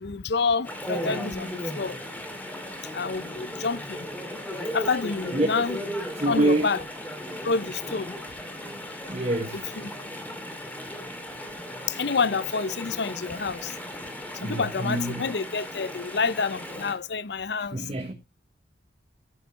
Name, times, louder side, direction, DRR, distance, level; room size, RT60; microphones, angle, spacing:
voice 1, 0.0-2.0 2.9-4.1 4.7-5.8 6.3-6.8 7.4-8.1 9.5-9.9 11.9-13.7 14.4-17.8, left 4 dB, 60° left, 0.6 m, -28 dB
Chatter / Stream, 0.6-16.9, equal, 10° left, 2.2 m, -36 dB
voice 2, 6.1-6.7 9.1-9.7 14.4-15.3 17.7-18.1, right 1 dB, 35° right, 1.1 m, -26 dB
13.5 x 8.1 x 3.3 m
head